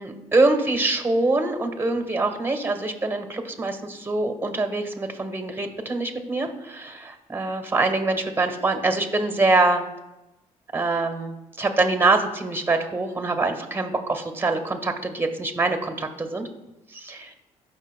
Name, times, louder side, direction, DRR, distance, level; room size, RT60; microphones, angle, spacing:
voice 1, 0.0-9.8 10.7-16.5 16.9-17.3, right 2 dB, 15° right, 5 dB, 1.5 m, -24 dB
16.5 x 5.9 x 2.2 m, 0.98 s
supercardioid pair, 70°, 13 cm